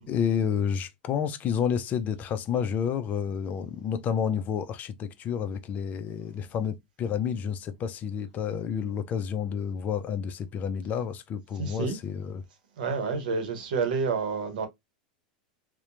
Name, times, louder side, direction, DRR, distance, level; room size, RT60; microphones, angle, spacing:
voice 1, 0.1-12.4, left 7 dB, 35° left, 0.4 m, -30 dB
voice 2, 11.6-12.0 12.8-14.7, right 5 dB, 75° right, 0.8 m, -29 dB
2.8 x 2.1 x 2.4 m
hypercardioid pair, 105°, 5 cm